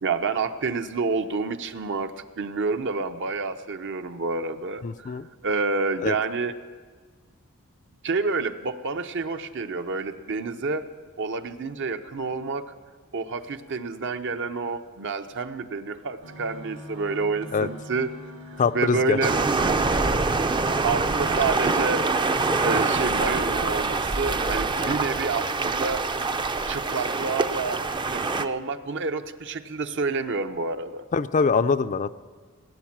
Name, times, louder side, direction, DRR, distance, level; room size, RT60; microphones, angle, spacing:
voice 1, 0.0-5.1 5.4-6.6 8.0-10.9 11.2-12.7 13.1-18.1 18.5-19.4 20.8-22.0 22.6-26.0 26.7-27.8 28.1-31.0, right 4 dB, 60° right, 8 dB, 0.8 m, -28 dB
voice 2, 4.8-5.3 6.0-6.1 17.5-17.7 18.6-19.2 24.8-24.9 31.1-32.1, left 5 dB, 35° left, 12 dB, 0.4 m, -23 dB
sound 1, 16.2-21.4, equal, 75° right, 1.8 m, -42 dB
sound 2, 19.2-28.4, right 3 dB, 20° right, 0.5 m, -25 dB
18.5 x 9.4 x 7.4 m, 1.5 s
head